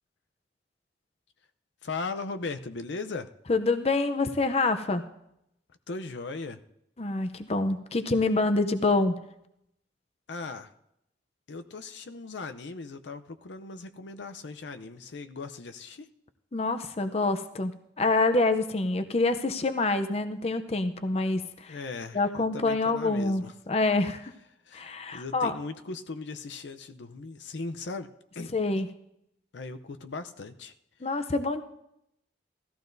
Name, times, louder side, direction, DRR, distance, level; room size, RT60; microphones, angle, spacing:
voice 1, 1.8-3.3 5.9-6.6 10.3-10.7 11.5-16.1 21.7-23.5 24.7-28.5 29.5-30.7, left 3 dB, 80° left, 9 dB, 0.6 m, -38 dB
voice 2, 3.5-5.0 7.0-9.2 16.5-21.8 22.1-24.3 24.7-25.5 28.5-28.9 31.0-31.6, left 3 dB, 35° left, 9 dB, 0.6 m, -26 dB
18.0 x 14.0 x 2.6 m, 0.80 s
head